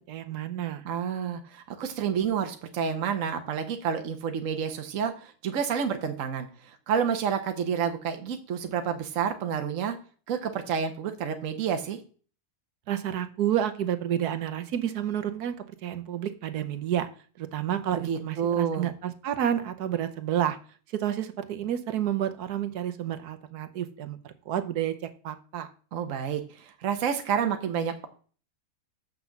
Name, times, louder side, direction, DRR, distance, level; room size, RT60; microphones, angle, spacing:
voice 1, 0.0-0.8 12.9-15.5 15.8-17.1 17.4-20.6 20.9-24.9 25.2-25.7, right 10 dB, 85° right, 9 dB, 1.4 m, -30 dB
voice 2, 0.8-10.0 10.3-12.0 17.9-18.9 25.9-28.1, right 7 dB, 60° right, 6 dB, 1.2 m, -29 dB
6.6 x 6.0 x 7.1 m, 0.41 s
omnidirectional pair, 1.6 m